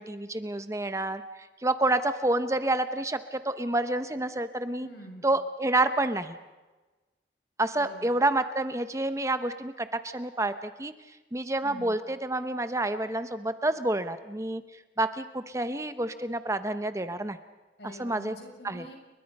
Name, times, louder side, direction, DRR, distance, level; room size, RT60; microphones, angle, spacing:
voice 1, 0.0-4.9 5.2-6.4 7.6-10.9 11.3-14.6 15.0-17.4 18.0-18.3 18.6-18.9, right 2 dB, 15° right, 10 dB, 0.8 m, -28 dB
voice 2, 4.8-5.2 7.7-8.2 11.6-12.0 17.8-19.0, equal, 70° left, 2 dB, 6.8 m, -46 dB
29.5 x 23.0 x 5.4 m, 1.2 s
head